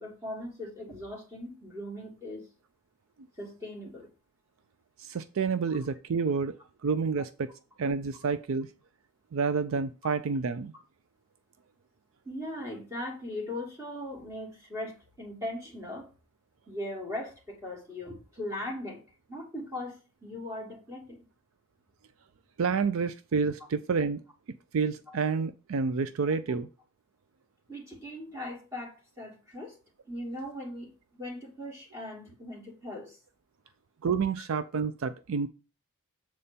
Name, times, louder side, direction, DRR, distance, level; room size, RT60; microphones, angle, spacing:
voice 1, 0.0-2.5 3.4-4.1 12.2-16.1 16.7-19.0 19.3-21.2 25.1-25.2 27.7-29.8 30.0-33.2, left 1 dB, 15° right, -2 dB, 2.6 m, -39 dB
voice 2, 5.0-6.6 6.8-7.5 7.8-8.7 9.3-10.7 22.6-24.2 24.7-26.7 34.0-35.5, right 5 dB, 65° right, 12 dB, 0.4 m, -29 dB
7.5 x 4.2 x 5.2 m, 0.33 s
head